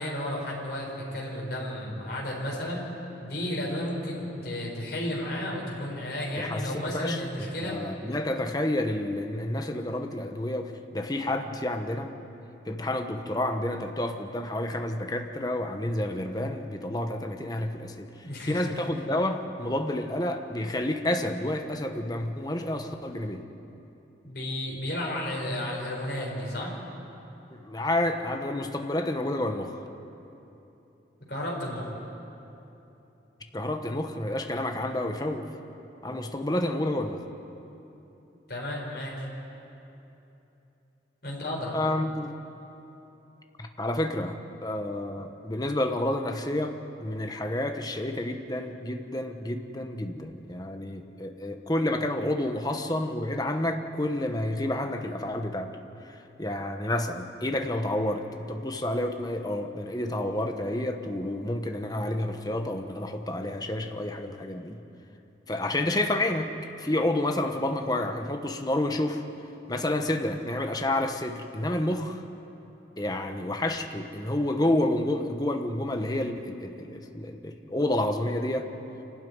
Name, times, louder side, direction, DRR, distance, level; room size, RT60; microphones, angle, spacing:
voice 1, 0.0-2.8 3.2-7.8 18.2-18.8 24.2-26.7 31.3-31.9 38.5-39.3 41.2-41.8, left 1 dB, 55° left, -3 dB, 4.9 m, -33 dB
voice 2, 6.4-12.1 12.7-23.5 27.5-29.8 33.5-35.5 36.0-37.3 41.7-42.4 43.6-55.8 56.0-64.8 65.5-69.2 69.7-72.2 73.0-78.7, left 1 dB, 20° left, 5 dB, 1.1 m, -29 dB
26.5 x 12.5 x 9.4 m, 3.0 s
head